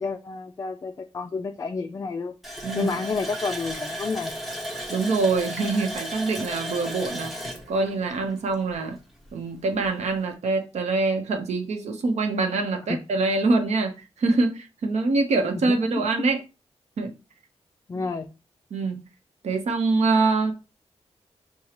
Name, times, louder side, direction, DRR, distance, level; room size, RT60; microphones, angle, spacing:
voice 1, 0.0-2.3 2.7-4.3 12.9-13.0 17.9-18.3, left 4 dB, 30° left, 0.3 m, -30 dB
Water tap faucet, 2.4-8.9 9.3-9.4 9.8-10.0, equal, ahead, 1.0 m, -34 dB
voice 2, 2.6-2.9 4.9-9.0 9.3-16.4 17.0-17.1 18.0-18.1 18.7-19.0 19.4-20.5, right 3 dB, 85° right, 0.9 m, -24 dB
6.5 x 2.3 x 3.0 m
wide cardioid pair, 150°, 11 cm